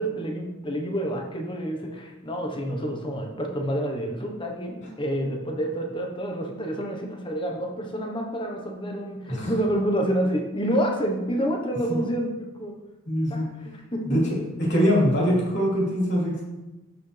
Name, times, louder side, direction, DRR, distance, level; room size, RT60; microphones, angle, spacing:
voice 1, 0.0-12.7 13.3-14.2, right 1 dB, 25° left, 2 dB, 1.2 m, -28 dB
voice 2, 13.1-13.4 14.0-14.2 14.6-16.4, equal, 55° left, -6 dB, 3.3 m, -23 dB
12.5 x 5.8 x 3.4 m, 1.0 s
head